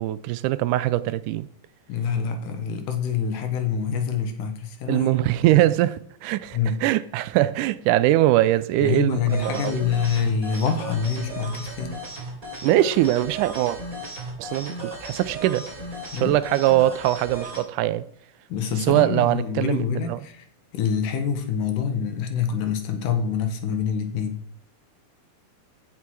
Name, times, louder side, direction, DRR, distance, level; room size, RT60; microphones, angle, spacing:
voice 1, 0.0-1.5 4.9-9.8 12.6-13.8 14.4-15.7 16.2-18.0 18.9-20.2, right 14 dB, 85° right, 2.1 m, -22 dB
voice 2, 1.9-5.6 6.5-6.8 8.8-12.0 16.1-16.4 18.5-20.4 20.7-24.4, left 6 dB, 90° left, 2.9 m, -26 dB
sound 1, 9.3-17.6, right 1 dB, 25° right, 3.9 m, -36 dB
15.5 x 5.7 x 4.7 m
omnidirectional pair, 3.5 m